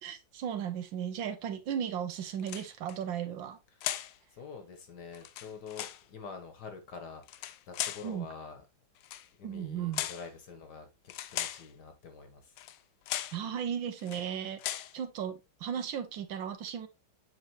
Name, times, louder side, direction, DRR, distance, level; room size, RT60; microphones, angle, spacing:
voice 1, 0.0-3.6 8.0-8.3 9.4-10.0 13.3-14.6 14.9-16.9, right 8 dB, 70° right, 1.5 m, -35 dB
sound 1, 2.4-3.0 3.8-4.2 5.1-6.0 7.2-8.1 9.0-9.3 9.9-10.3 11.1-11.7 12.6-12.8 13.1-13.4 14.0-14.3 14.6-14.9, left 13 dB, 75° left, 1.1 m, -37 dB
voice 2, 4.3-8.6 9.4-10.9 11.3-12.5, left 5 dB, 60° left, 1.6 m, -46 dB
7.9 x 4.9 x 3.0 m
omnidirectional pair, 2.2 m